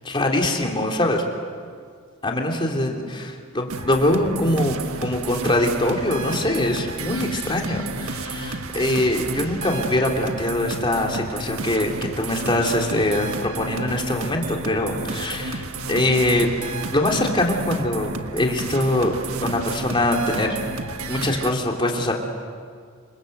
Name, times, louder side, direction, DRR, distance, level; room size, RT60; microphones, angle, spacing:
voice 1, 0.0-1.2 2.2-11.9 12.2-16.5 16.9-19.1 19.4-20.6 21.1-22.1, left 1 dB, 25° left, 1 dB, 3.2 m, -23 dB
sound 1, 3.7-21.5, right 3 dB, 80° right, 1.5 m, -32 dB
28.0 x 26.5 x 7.9 m, 2.1 s
head